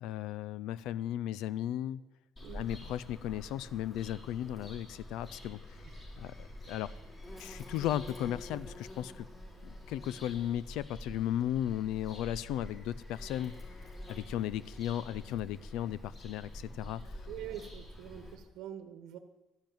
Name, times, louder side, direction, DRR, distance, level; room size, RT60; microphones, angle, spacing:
voice 1, 0.0-2.0 2.5-5.8 6.2-6.9 7.4-9.3 9.9-13.5 14.1-17.2, left 11 dB, 75° left, 18 dB, 0.4 m, -35 dB
Bird vocalization bird call bird song, 2.4-18.4, left 1 dB, 20° left, 3.4 m, -47 dB
voice 2, 17.3-19.2, right 10 dB, 65° right, 10 dB, 1.1 m, -44 dB
12.0 x 10.5 x 9.2 m, 1.0 s
cardioid pair, 175°, 0 cm